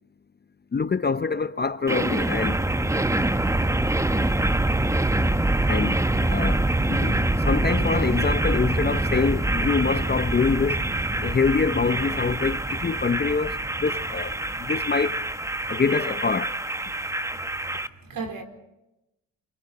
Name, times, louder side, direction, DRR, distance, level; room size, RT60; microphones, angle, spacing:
voice 1, 0.7-2.6 5.7-10.8 11.2-15.2 15.7-16.6, left 5 dB, 25° left, 0.8 m, -25 dB
sound 1, 1.9-17.9, right 1 dB, 10° right, 1.0 m, -25 dB
voice 2, 12.2-12.5 17.4-18.4, right 4 dB, 55° right, 4.5 m, -38 dB
29.5 x 23.5 x 4.3 m
supercardioid pair, 65°, 39 cm